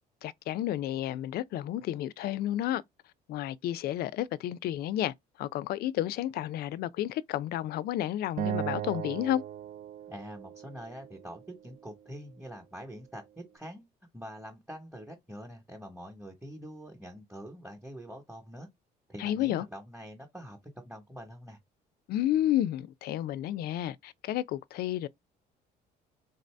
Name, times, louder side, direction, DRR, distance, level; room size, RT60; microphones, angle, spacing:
voice 1, 0.2-2.8 3.3-9.4 19.2-19.6 22.1-25.1, left 12 dB, 65° left, 0.4 m, -31 dB
Acoustic guitar, 8.4-11.6, right 10 dB, 55° right, 0.4 m, -37 dB
voice 2, 10.1-13.8 14.1-18.7 19.1-21.6, equal, 5° right, 1.0 m, -45 dB
3.9 x 2.6 x 3.2 m
cardioid pair, 110°, 17 cm